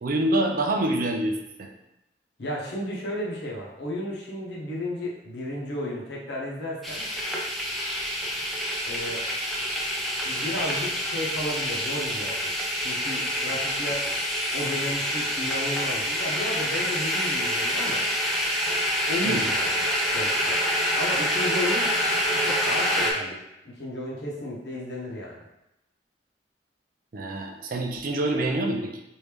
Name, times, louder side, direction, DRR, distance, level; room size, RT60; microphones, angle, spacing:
voice 1, 0.0-1.7 19.2-19.4 27.1-29.0, right 1 dB, 50° right, 2 dB, 0.5 m, -26 dB
voice 2, 2.4-7.0 8.8-9.2 10.2-12.4 12.8-14.1 14.5-18.0 19.1-19.9 20.1-20.6 21.0-21.9 22.4-23.4 23.8-25.5, left 1 dB, 70° left, -4 dB, 0.9 m, -33 dB
sound 1, 6.8-23.1, equal, ahead, 0.5 m, -27 dB
3.1 x 2.6 x 3.4 m, 0.88 s
head